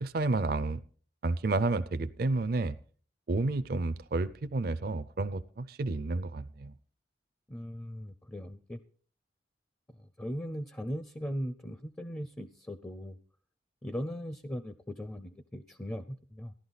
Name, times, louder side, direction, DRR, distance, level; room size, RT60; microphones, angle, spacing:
voice 1, 0.0-0.8 1.2-2.8 3.3-6.7, right 3 dB, 50° right, 12 dB, 0.4 m, -30 dB
voice 2, 7.5-8.8 9.9-13.2 13.8-16.5, equal, 15° left, 11 dB, 0.4 m, -39 dB
14.0 x 11.5 x 4.0 m, 0.43 s
head